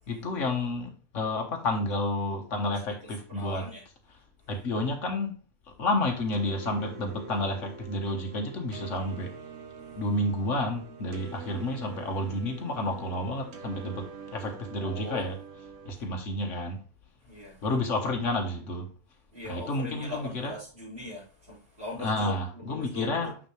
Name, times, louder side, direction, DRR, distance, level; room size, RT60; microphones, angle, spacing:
voice 1, 0.1-3.7 4.1-4.2 4.5-5.3 5.7-9.3 10.0-15.4 15.8-16.8 17.6-18.9 19.4-20.6 21.9-23.4, left 1 dB, 55° left, 1.5 m, -30 dB
voice 2, 3.3-3.8 14.7-15.2 17.3-17.6 19.3-23.3, left 2 dB, 40° right, 4.2 m, -40 dB
sound 1, 6.3-15.9, right 5 dB, 55° right, 1.2 m, -45 dB
6.4 x 6.0 x 3.2 m
omnidirectional pair, 1.6 m